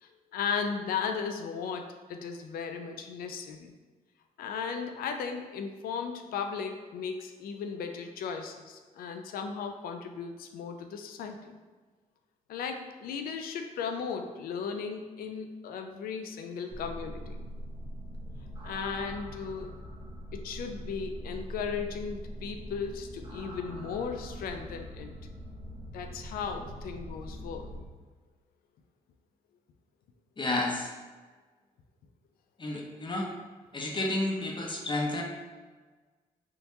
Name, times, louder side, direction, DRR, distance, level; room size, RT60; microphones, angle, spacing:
voice 1, 0.0-3.7 4.4-11.6 12.5-17.5 18.6-19.7 20.3-25.1 25.9-27.7, left 6 dB, 80° left, 5 dB, 0.4 m, -36 dB
sound 1, 16.7-27.9, equal, 30° right, 0.8 m, -42 dB
voice 2, 30.4-30.9 32.6-33.3 33.7-35.2, left 2 dB, 30° left, 0 dB, 0.6 m, -31 dB
3.5 x 2.8 x 2.7 m, 1.4 s
supercardioid pair, 65°, 15 cm